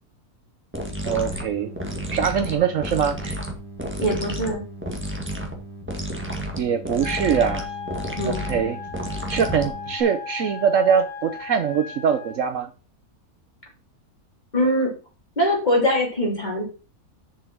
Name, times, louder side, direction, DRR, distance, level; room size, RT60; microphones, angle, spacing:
sound 1, 0.7-10.0, equal, 10° right, 1.7 m, -31 dB
voice 1, 1.0-1.7 2.1-3.4 6.6-7.7 8.2-8.8 9.3-12.7, right 7 dB, 65° right, 1.0 m, -23 dB
voice 2, 4.0-4.6 8.2-8.5 14.5-14.9 15.4-16.6, equal, 30° left, 3.1 m, -22 dB
Wind instrument woodwind instrument, 7.0-12.4, left 6 dB, 80° left, 3.3 m, -36 dB
7.0 x 5.6 x 6.0 m
omnidirectional pair, 1.6 m